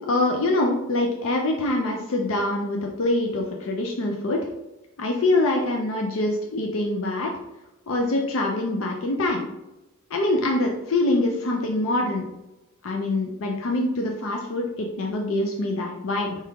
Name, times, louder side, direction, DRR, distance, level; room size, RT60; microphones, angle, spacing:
voice 1, 0.1-4.5 5.0-7.3 7.9-9.4 10.1-12.3 12.8-16.4, left 2 dB, 65° left, 1 dB, 0.5 m, -24 dB
4.6 x 2.9 x 3.5 m, 0.99 s
head